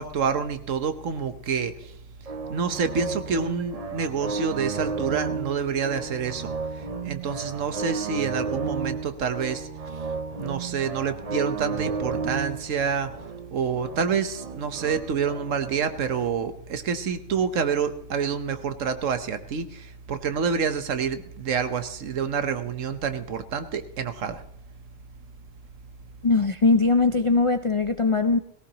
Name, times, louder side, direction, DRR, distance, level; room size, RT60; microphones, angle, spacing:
voice 1, 0.0-1.9 2.5-9.7 10.4-13.1 13.5-24.4, right 6 dB, 75° right, 10 dB, 1.4 m, -28 dB
sound 1, 2.3-16.3, right 4 dB, 35° right, 0.7 m, -33 dB
voice 2, 26.2-28.4, left 3 dB, 50° left, 9 dB, 0.3 m, -20 dB
18.0 x 17.0 x 2.9 m, 0.74 s
omnidirectional pair, 1.3 m